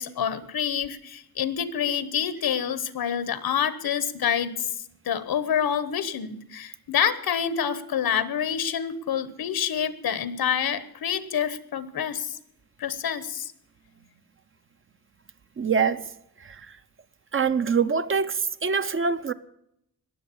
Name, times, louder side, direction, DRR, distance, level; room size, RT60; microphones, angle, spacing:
voice 1, 0.0-4.7 5.0-12.4 12.8-13.5, left 8 dB, 85° left, 1.2 m, -27 dB
voice 2, 15.6-16.0 17.3-19.3, right 5 dB, 35° right, 0.6 m, -24 dB
20.5 x 7.8 x 8.4 m
wide cardioid pair, 175°, 35 cm